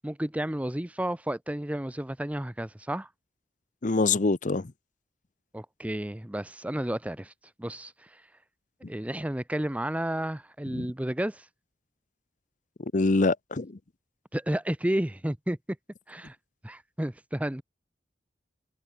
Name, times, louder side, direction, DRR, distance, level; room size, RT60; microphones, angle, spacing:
voice 1, 0.0-3.1 5.5-7.3 7.6-7.9 8.9-11.5 14.3-15.6 16.1-16.4 16.6-17.6, right 1 dB, 10° right, 0.6 m, -31 dB
voice 2, 3.8-4.7 10.7-10.9 12.9-13.8, left 3 dB, 45° left, 0.7 m, -25 dB
head